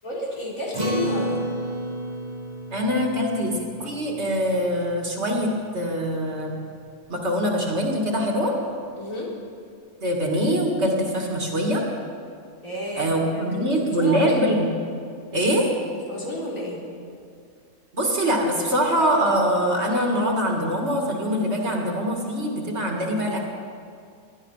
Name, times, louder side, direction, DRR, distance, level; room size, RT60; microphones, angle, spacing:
voice 1, 0.0-1.4 9.0-9.3 12.6-14.5 15.9-16.8, left 1 dB, 75° left, -5 dB, 4.3 m, -31 dB
Acoustic guitar, 0.7-5.4, right 1 dB, 30° right, 1.8 m, -32 dB
voice 2, 2.7-6.6 7.1-8.5 10.0-11.8 13.0-14.7 15.3-15.7 17.9-23.4, equal, 50° right, 0 dB, 2.6 m, -23 dB
20.0 x 12.5 x 5.7 m, 2.3 s
omnidirectional pair, 1.4 m